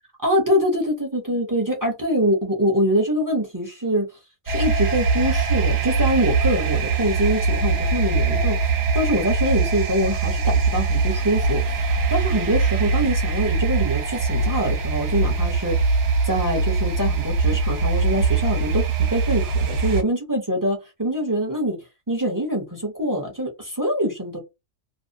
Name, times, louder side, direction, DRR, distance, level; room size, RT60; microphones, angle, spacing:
voice 1, 0.2-4.0 4.5-15.9 16.3-21.8 22.1-24.4, equal, 25° right, 0.5 m, -24 dB
sound 1, 4.5-20.0, right 4 dB, 60° right, 0.8 m, -22 dB
2.5 x 2.0 x 2.6 m
omnidirectional pair, 1.4 m